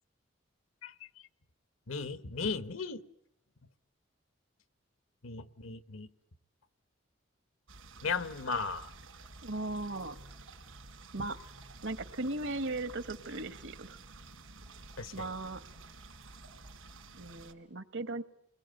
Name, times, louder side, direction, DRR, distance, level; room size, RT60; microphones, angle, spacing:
voice 1, 1.9-3.0 5.2-6.1 8.0-8.9 15.0-15.3, left 4 dB, 80° left, 13 dB, 1.1 m, -36 dB
sound 1, 7.7-17.5, right 3 dB, 85° right, 3.9 m, -51 dB
voice 2, 9.4-10.2 11.1-11.4 11.8-14.0 15.1-15.6 17.1-18.2, right 2 dB, 60° right, 14 dB, 1.0 m, -37 dB
29.5 x 21.0 x 9.0 m, 0.75 s
head